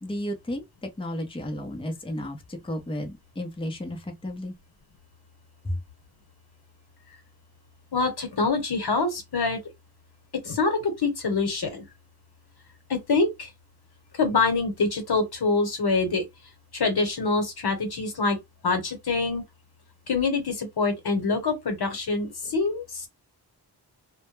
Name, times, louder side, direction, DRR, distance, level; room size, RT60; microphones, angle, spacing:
voice 1, 0.0-4.5 5.6-5.8, left 1 dB, 15° left, 0.6 m, -33 dB
voice 2, 7.9-9.6 10.4-11.8 12.9-13.5 14.1-16.2 16.7-18.4 18.6-19.4 20.1-23.1, left 3 dB, 65° left, 1.0 m, -25 dB
2.1 x 2.1 x 3.1 m
cardioid pair, 60°, 41 cm